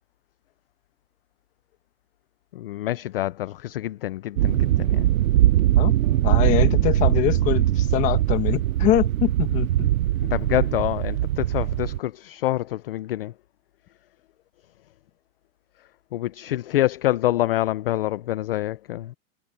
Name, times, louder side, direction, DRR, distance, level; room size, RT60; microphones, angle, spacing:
voice 1, 2.5-5.1 10.2-13.3 16.1-19.1, left 14 dB, 45° left, 0.5 m, -26 dB
sound 1, 4.4-12.0, right 13 dB, 80° right, 0.8 m, -21 dB
sound 2, 6.0-9.2, right 3 dB, 5° right, 2.3 m, -37 dB
voice 2, 6.2-9.9, left 14 dB, 20° left, 1.2 m, -24 dB
supercardioid pair, 180°, 42 cm